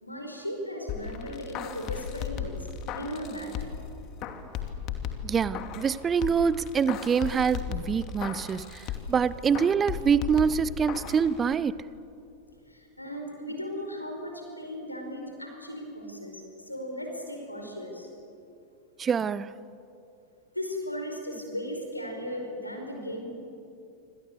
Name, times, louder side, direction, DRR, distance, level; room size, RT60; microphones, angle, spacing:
voice 1, 0.0-2.5 2.9-3.5 8.6-9.1 12.7-18.1 20.5-23.3, equal, 85° left, 3 dB, 4.9 m, -37 dB
sound 1, 0.9-3.9 4.2-5.9 6.2-9.2 9.5-11.2 11.5-11.6, left 8 dB, 35° left, 2.6 m, -36 dB
voice 2, 5.2-11.9 19.0-19.5, right 6 dB, 20° right, 18 dB, 0.8 m, -25 dB
27.5 x 26.0 x 8.2 m, 2.7 s
figure-of-eight pair, 90°, 0 cm